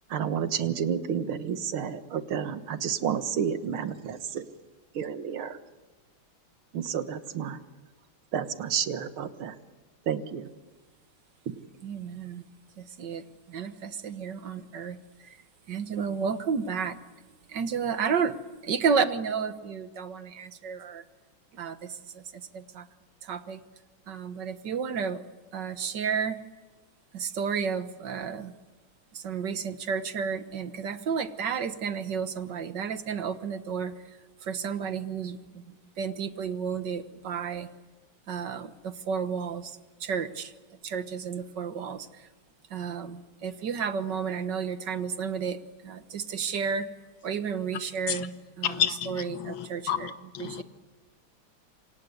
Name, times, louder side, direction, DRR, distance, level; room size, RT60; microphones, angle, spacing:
voice 1, 0.1-4.4 5.0-5.5 6.7-7.6 8.3-9.5 10.1-10.4, right 8 dB, 85° right, 11 dB, 2.2 m, -30 dB
voice 2, 11.8-12.4 12.8-13.2 13.5-15.0 15.7-17.0 17.5-18.4 18.6-21.0 21.6-21.9 22.2-22.9 23.2-23.6 24.1-25.2 25.5-26.4 27.1-28.5 29.1-33.9 34.4-35.6 36.0-37.7 38.3-40.5 40.8-42.1 42.7-45.6 45.8-46.9 47.2-50.6, right 6 dB, 60° right, 11 dB, 1.9 m, -32 dB
voice 3, 48.6-50.6, left 9 dB, 70° left, 10 dB, 2.0 m, -30 dB
28.0 x 25.0 x 8.1 m, 1.3 s
omnidirectional pair, 2.3 m